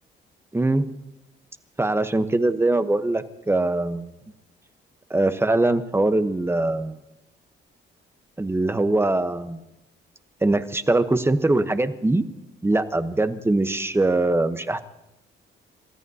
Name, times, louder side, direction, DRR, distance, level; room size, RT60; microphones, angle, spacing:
voice 1, 0.5-0.9 1.8-4.1 5.1-6.9 8.4-9.6 10.4-12.2 12.6-14.8, right 2 dB, 10° right, 10 dB, 0.9 m, -22 dB
28.5 x 14.0 x 2.8 m, 0.90 s
cardioid pair, 90°, 20 cm